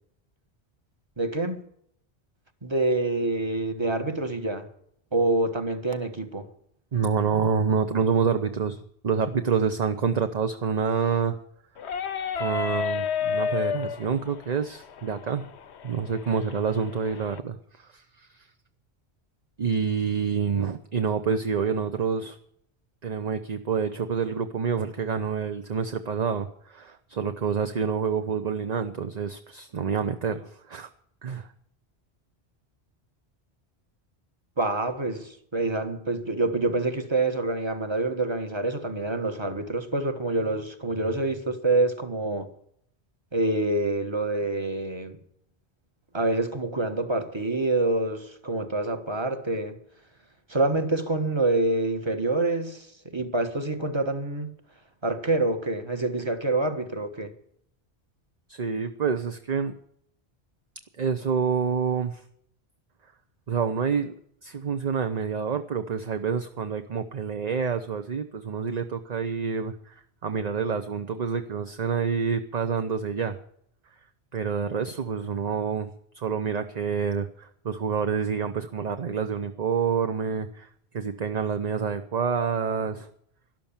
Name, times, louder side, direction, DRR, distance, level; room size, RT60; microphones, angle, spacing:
voice 1, 1.2-1.6 2.6-4.7 5.1-6.5 34.6-42.5 43.3-45.2 46.1-49.8 50.5-54.5 55.0-57.3, right 2 dB, 25° right, 1.4 m, -26 dB
voice 2, 6.9-11.4 12.4-15.5 15.8-18.3 19.6-22.4 23.0-30.9 31.2-31.5 58.5-59.7 61.0-62.2 63.5-64.1 64.4-69.9 70.2-73.4 74.3-75.9 76.1-80.7 80.9-83.1, right 6 dB, 45° right, 0.8 m, -27 dB
sound 1, 11.8-17.4, left 6 dB, 85° left, 1.1 m, -31 dB
12.5 x 12.0 x 7.3 m
omnidirectional pair, 1.1 m